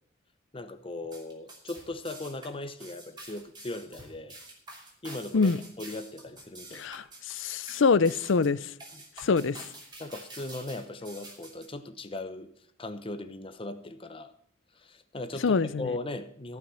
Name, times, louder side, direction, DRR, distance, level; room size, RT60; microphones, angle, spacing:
voice 1, 0.5-4.4 5.0-5.5 5.8-6.8 8.9-9.0 10.0-12.5 12.8-14.3 14.7-16.6, left 2 dB, 25° left, 10 dB, 0.8 m, -38 dB
sound 1, 1.0-11.7, right 2 dB, 20° right, 2.8 m, -47 dB
voice 2, 6.7-8.7 9.2-9.7 15.4-15.9, left 4 dB, 65° left, 17 dB, 0.5 m, -25 dB
14.5 x 5.9 x 7.5 m, 0.66 s
head